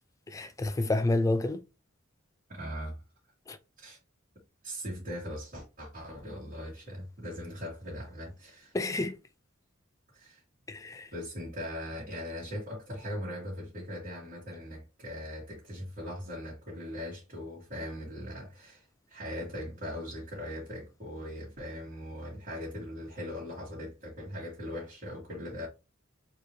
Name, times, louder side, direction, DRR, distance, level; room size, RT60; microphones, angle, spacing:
voice 1, 0.3-1.6 3.5-3.6 8.7-9.2 10.7-11.1, left 2 dB, 15° left, 0.3 m, -29 dB
voice 2, 2.5-3.0 3.8-4.0 4.6-8.8 10.1-10.4 11.1-25.7, equal, 45° right, 2.2 m, -40 dB
4.5 x 3.2 x 3.1 m
head